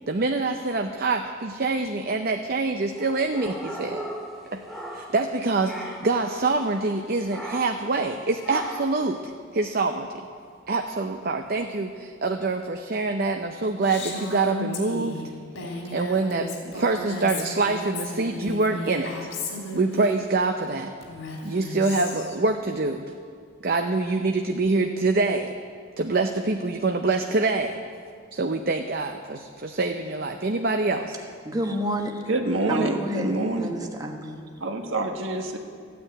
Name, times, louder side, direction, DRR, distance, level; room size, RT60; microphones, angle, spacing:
voice 1, 0.1-4.0 4.5-10.3 10.7-15.2 15.9-19.3 19.7-20.9 21.4-23.1 23.6-25.5 26.0-27.8 28.3-31.2, right 3 dB, 50° right, 5 dB, 0.7 m, -25 dB
sound 1, 2.9-5.3 5.6-6.2 7.3-7.9 8.4-9.0, equal, ahead, 1.9 m, -37 dB
Female speech woman speaking, 13.8-20.2 21.0-22.4, left 2 dB, 75° left, 3.2 m, -34 dB
voice 2, 31.4-32.2 32.7-34.4, equal, 20° right, 3 dB, 1.1 m, -30 dB
voice 3, 32.3-33.7 34.6-35.6, right 2 dB, 70° right, 4 dB, 1.5 m, -26 dB
14.5 x 9.4 x 8.7 m, 2.2 s
head